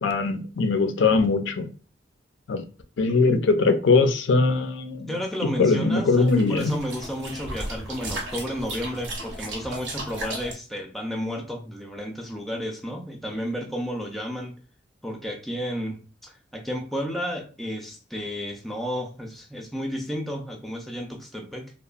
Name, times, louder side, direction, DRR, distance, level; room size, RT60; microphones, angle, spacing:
voice 1, 0.0-1.7 2.5-2.6 3.0-5.1 5.4-6.7, left 3 dB, 90° left, 0.4 m, -21 dB
voice 2, 5.1-14.5 15.0-21.7, equal, ahead, 0.3 m, -32 dB
sound 1, 6.1-10.5, right 1 dB, 85° right, 0.8 m, -35 dB
2.9 x 2.1 x 2.4 m
head